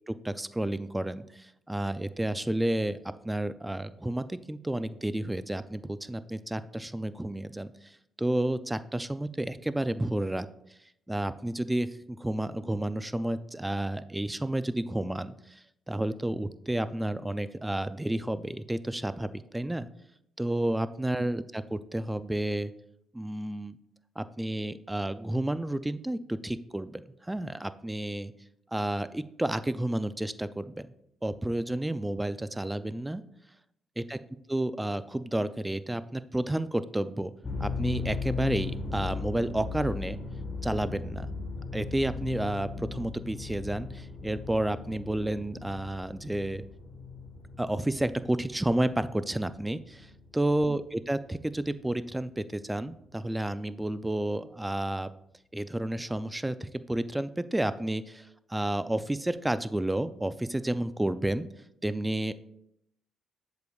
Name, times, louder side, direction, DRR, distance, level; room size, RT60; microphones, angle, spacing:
voice 1, 0.1-10.5 11.1-19.9 20.4-22.7 23.1-23.8 24.2-28.3 28.7-30.9 31.2-33.2 34.0-34.2 34.5-37.3 37.6-40.2 40.6-41.3 41.7-46.7 47.6-55.1 55.5-61.5 61.8-62.3, right 1 dB, 10° right, 13 dB, 0.3 m, -31 dB
sound 1, 37.4-50.7, left 4 dB, 25° left, 1.3 m, -37 dB
8.1 x 6.8 x 2.3 m, 0.77 s
cardioid pair, 90°, 0 cm